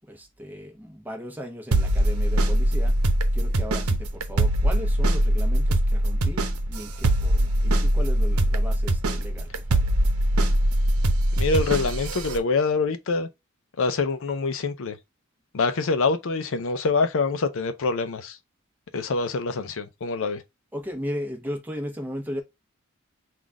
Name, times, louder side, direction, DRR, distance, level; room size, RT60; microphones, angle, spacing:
voice 1, 0.1-2.9 3.3-6.4 6.7-9.9 20.7-22.4, equal, 10° right, 1.0 m, -36 dB
sound 1, 1.7-12.4, right 1 dB, 85° right, 0.8 m, -22 dB
voice 2, 11.4-13.3 13.8-15.0 15.5-18.4 18.9-20.4, left 4 dB, 65° left, 0.5 m, -25 dB
4.0 x 2.4 x 4.6 m
head